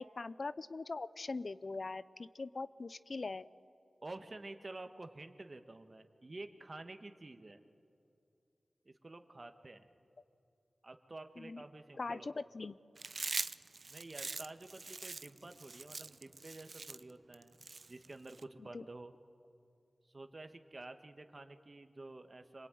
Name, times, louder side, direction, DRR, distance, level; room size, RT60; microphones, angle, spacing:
voice 1, 0.0-3.5 11.4-11.6 11.9-12.8 18.6-18.9, left 3 dB, 65° left, 16 dB, 0.6 m, -42 dB
voice 2, 4.0-7.6 8.8-9.9 10.8-12.3 13.9-17.6 17.9-19.1 20.1-22.7, right 2 dB, 45° right, 7 dB, 1.6 m, -50 dB
Chewing mastication, 13.0-18.4, right 3 dB, 65° right, 0.5 m, -43 dB
27.0 x 21.0 x 9.3 m, 2.6 s
cardioid pair, 45°, 0 cm